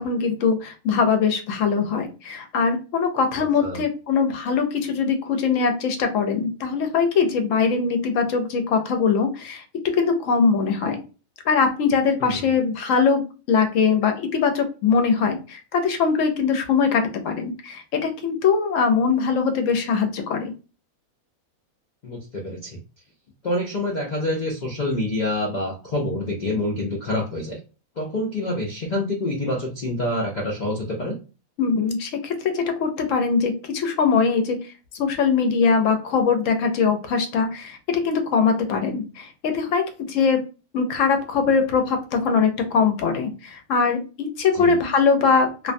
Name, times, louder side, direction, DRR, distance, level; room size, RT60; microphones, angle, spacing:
voice 1, 0.0-9.6 9.9-11.0 11.4-13.2 13.5-20.5 31.6-34.6 34.9-40.4 40.7-45.7, left 5 dB, 70° left, 6 dB, 0.9 m, -22 dB
voice 2, 3.3-3.8 12.2-12.6 22.0-22.8 23.4-27.6 28.0-31.2 44.5-44.8, left 1 dB, 85° left, 0 dB, 0.4 m, -27 dB
2.5 x 2.2 x 2.5 m, 0.33 s
omnidirectional pair, 1.5 m